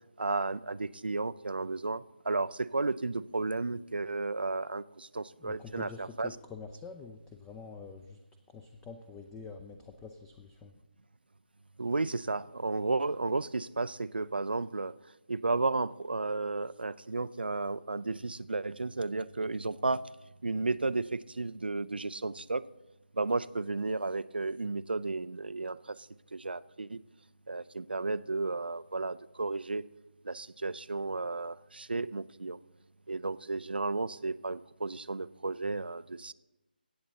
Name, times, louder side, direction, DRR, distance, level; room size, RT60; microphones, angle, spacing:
voice 1, 0.2-6.3 11.8-14.9 15.3-20.0 20.4-22.6 23.2-26.0 26.3-27.0 27.5-29.8 30.3-32.6 33.1-36.3, right 3 dB, 75° right, 18 dB, 0.4 m, -33 dB
voice 2, 5.4-8.2 8.5-10.8, left 5 dB, 10° left, 6 dB, 0.4 m, -46 dB
17.5 x 7.7 x 4.1 m, 0.98 s
figure-of-eight pair, 150°, 5 cm